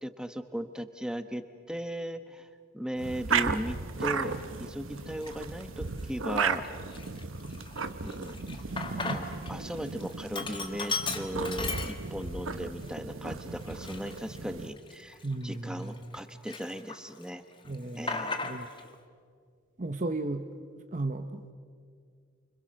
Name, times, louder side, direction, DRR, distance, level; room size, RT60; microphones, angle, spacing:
voice 1, 0.0-2.5 2.7-6.6 8.0-8.4 9.0-17.4 17.9-18.4, equal, 5° right, 9 dB, 1.0 m, -37 dB
sound 1, 3.0-14.7, right 5 dB, 70° right, 1.0 m, -35 dB
Sink (filling or washing), 4.2-4.4 5.1-5.6 6.0-6.1 6.4-9.5 9.8-12.4 12.8-12.9 13.6-16.2 16.5-17.2 17.5-18.9, left 4 dB, 25° left, 1.5 m, -37 dB
voice 2, 15.2-16.1 17.6-18.7 19.8-20.5 20.9-21.5, right 2 dB, 35° right, 7 dB, 0.9 m, -35 dB
29.0 x 26.0 x 6.4 m, 2.1 s
head